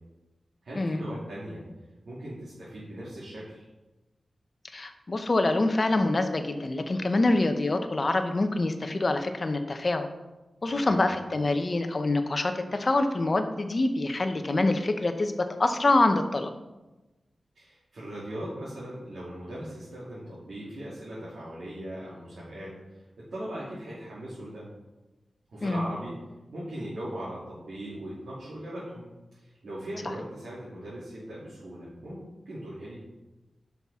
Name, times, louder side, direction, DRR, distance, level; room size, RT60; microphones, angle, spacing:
voice 1, 0.6-1.6 2.0-3.7 10.7-11.0 17.5-23.0 23.3-24.6 25.5-26.1 26.5-33.0, right 1 dB, 75° right, -9 dB, 2.7 m, -39 dB
voice 2, 4.7-10.1 10.6-16.5 25.6-25.9, left 2 dB, 35° left, 7 dB, 0.7 m, -25 dB
10.0 x 5.7 x 3.6 m, 1.1 s
wide cardioid pair, 135°, 0 cm